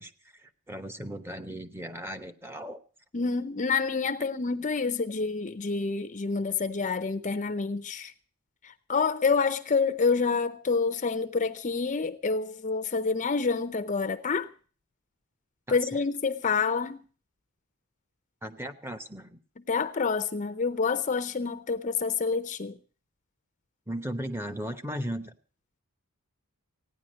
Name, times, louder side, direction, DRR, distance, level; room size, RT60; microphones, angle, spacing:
voice 1, 0.0-2.8 15.7-16.0 18.4-19.4 23.9-25.4, equal, 10° right, 1.0 m, -37 dB
voice 2, 3.1-8.1 8.9-14.5 15.7-17.0 19.7-22.8, left 4 dB, 35° left, 0.7 m, -28 dB
16.5 x 10.0 x 6.3 m
head